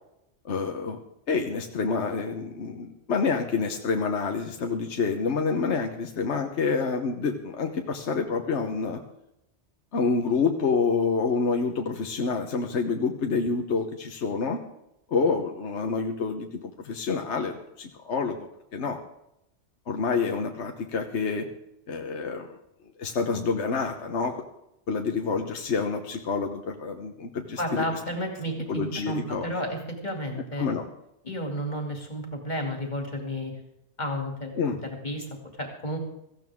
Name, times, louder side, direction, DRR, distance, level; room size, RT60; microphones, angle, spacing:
voice 1, 0.4-1.0 1.3-9.0 9.9-14.6 15.1-19.0 19.9-21.5 21.9-22.5 23.0-24.3 24.9-27.8 28.7-29.5 30.6-30.8 34.6-34.8, left 4 dB, 70° left, 4 dB, 1.4 m, -28 dB
voice 2, 27.6-30.7 31.2-33.5 34.0-34.6 35.0-35.3 35.6-36.0, equal, 40° left, 2 dB, 2.8 m, -32 dB
17.0 x 15.0 x 3.6 m, 0.83 s
omnidirectional pair, 1.2 m